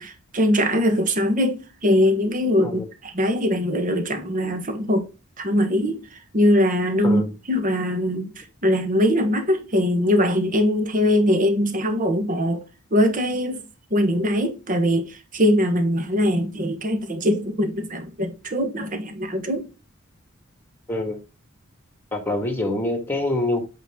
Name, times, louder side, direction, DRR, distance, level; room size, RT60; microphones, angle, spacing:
voice 1, 0.0-2.8 3.1-5.1 5.4-6.0 6.3-8.3 8.6-12.6 12.9-13.6 13.9-19.7, equal, 40° right, 1.4 m, -21 dB
voice 2, 20.9-21.2 22.1-23.7, left 2 dB, 10° left, 1.8 m, -25 dB
8.1 x 4.5 x 3.7 m
head